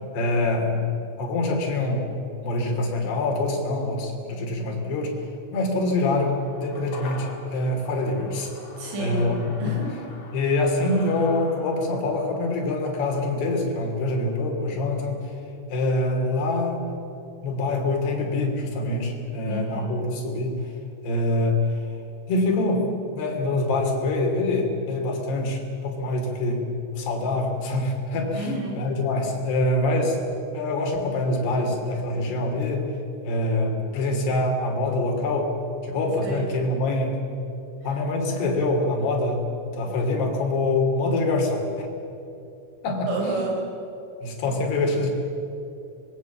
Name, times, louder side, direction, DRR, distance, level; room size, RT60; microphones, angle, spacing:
voice 1, 0.1-0.8 1.2-2.1 2.4-8.5 9.0-9.4 10.3-15.3 15.7-16.9 17.4-20.6 21.0-21.9 22.3-22.8 23.1-26.6 26.9-28.5 28.8-30.2 30.5-32.9 33.2-35.5 35.8-37.2 37.8-41.9 42.8-43.1 44.2-45.1, left 2 dB, 60° left, 2 dB, 4.9 m, -25 dB
sound 1, 6.2-14.7 15.0-15.1, left 3 dB, 35° left, 2.1 m, -45 dB
voice 2, 8.8-9.3 9.6-10.2 19.5-19.9 28.3-28.8 36.2-36.5 43.1-43.6, right 2 dB, 75° right, -1 dB, 7.0 m, -30 dB
25.0 x 21.5 x 7.3 m, 2.9 s
omnidirectional pair, 5.6 m